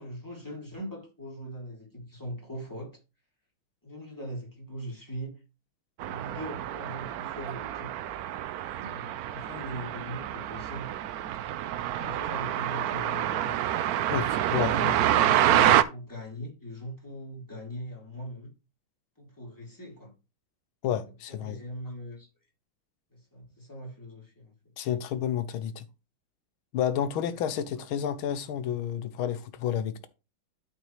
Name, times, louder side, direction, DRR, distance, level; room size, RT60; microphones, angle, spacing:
voice 1, 0.0-3.0 3.8-5.4 6.0-7.9 8.6-10.9 11.7-13.5 14.4-18.5 19.2-20.1 21.3-22.3 23.1-24.5 27.3-27.7, equal, 10° left, 3.0 m, -40 dB
sound 1, 6.0-15.8, right 12 dB, 85° right, 0.8 m, -27 dB
voice 2, 14.1-14.7 20.8-21.6 24.8-25.8 26.7-30.1, left 9 dB, 85° left, 1.6 m, -30 dB
12.0 x 4.6 x 3.2 m
omnidirectional pair, 2.2 m